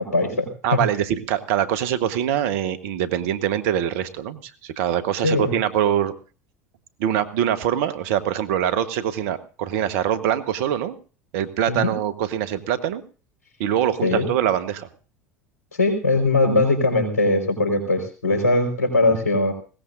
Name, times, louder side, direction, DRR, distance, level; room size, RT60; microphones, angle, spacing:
voice 1, 0.0-0.8 5.2-5.5 11.7-11.9 14.0-14.2 15.8-19.5, left 2 dB, 85° left, 3 dB, 4.6 m, -20 dB
voice 2, 0.6-6.1 7.0-11.0 11.3-13.0 13.6-14.9 19.1-19.2, right 10 dB, 65° right, 11 dB, 1.3 m, -23 dB
20.5 x 17.5 x 2.6 m, 0.36 s
hypercardioid pair, 75°, 8 cm